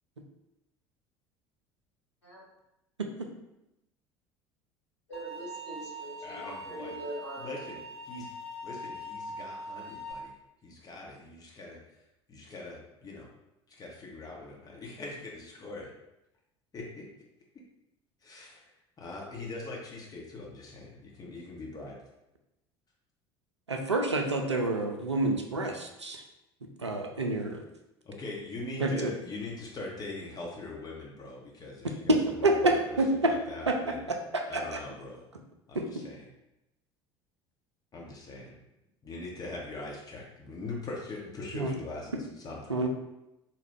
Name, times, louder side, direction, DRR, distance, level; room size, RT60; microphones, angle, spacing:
voice 1, 5.1-7.6, right 1 dB, 80° left, -5 dB, 1.1 m, -42 dB
sound 1, 5.1-10.1, equal, 70° right, 0.8 m, -42 dB
voice 2, 6.2-7.0 7.4-7.8 8.1-8.3 8.6-10.3 10.6-11.8 12.3-13.3 13.7-15.9 16.7-17.1 18.2-18.7 19.0-21.9 28.0-32.5 32.9-34.1 34.5-35.2 35.7-36.3 37.9-38.6 39.0-42.7, left 2 dB, 25° left, -3 dB, 0.9 m, -42 dB
voice 3, 23.7-26.2 26.8-27.6 28.8-29.1 32.1-33.3 33.7-34.2 34.5-34.6 35.8-35.9 41.5-41.7 42.7-42.9, right 2 dB, 85° right, 3 dB, 0.4 m, -28 dB
4.1 x 2.3 x 3.4 m, 0.91 s
figure-of-eight pair, 65°, 14 cm